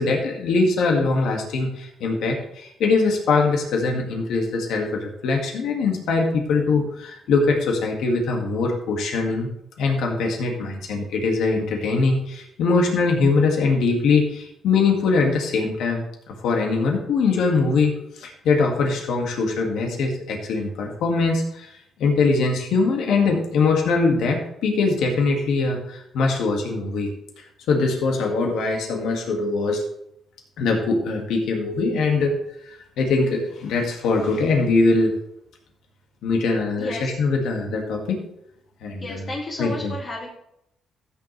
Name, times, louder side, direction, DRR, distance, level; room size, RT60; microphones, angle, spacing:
voice 1, 0.0-9.5 9.8-21.7 22.0-27.1 27.7-29.8 30.6-32.4 33.0-35.1 36.2-38.2 38.8-39.3 39.6-40.0, left 3 dB, 80° left, 2 dB, 2.0 m, -22 dB
voice 2, 36.8-37.1 39.0-40.3, left 1 dB, 45° left, -3 dB, 2.5 m, -32 dB
14.5 x 7.1 x 3.3 m, 0.77 s
cardioid pair, 90°, 0 cm